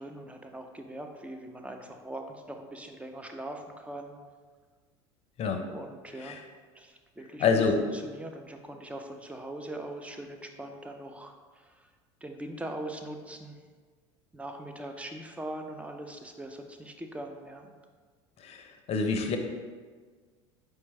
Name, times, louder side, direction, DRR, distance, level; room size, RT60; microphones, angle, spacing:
voice 1, 0.0-4.2 5.7-6.4 6.7-7.5 7.9-11.9 12.2-13.6 14.3-17.7, right 1 dB, 10° right, 4 dB, 0.5 m, -41 dB
voice 2, 7.4-7.8 18.4-19.4, left 5 dB, 45° left, 5 dB, 0.6 m, -27 dB
4.6 x 3.3 x 3.2 m, 1.5 s
hypercardioid pair, 85°, 15 cm